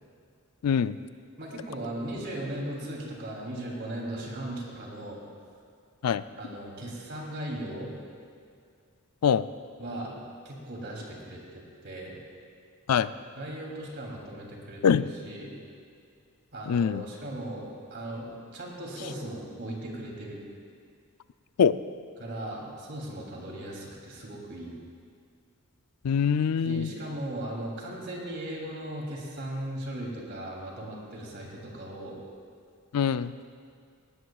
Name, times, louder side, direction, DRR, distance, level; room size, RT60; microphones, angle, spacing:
voice 1, 0.6-0.9 6.0-6.2 9.2-9.4 12.9-13.1 14.8-15.0 16.7-17.0 21.6-21.8 26.0-26.9 32.9-33.3, left 7 dB, 90° left, 14 dB, 0.4 m, -23 dB
voice 2, 1.4-5.2 6.4-7.9 9.8-10.2 10.4-12.2 13.3-15.6 16.5-20.4 22.2-24.8 26.6-32.2, right 1 dB, 50° right, -2 dB, 3.0 m, -37 dB
18.0 x 18.0 x 2.4 m, 2.3 s
head